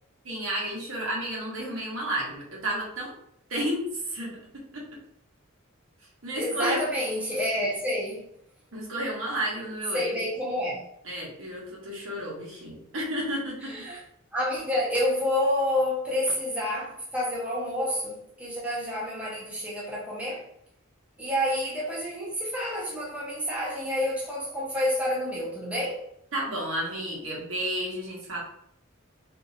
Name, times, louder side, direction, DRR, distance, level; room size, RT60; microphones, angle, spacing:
voice 1, 0.2-3.1 3.5-4.3 4.7-4.8 6.2-6.9 8.7-10.2 11.0-13.7 26.3-28.4, right 1 dB, 75° right, 1.1 m, -31 dB
voice 2, 6.3-8.2 9.9-10.8 13.7-14.0 14.3-20.4 21.2-26.0, left 1 dB, 5° right, 0.6 m, -29 dB
2.9 x 2.6 x 2.6 m
head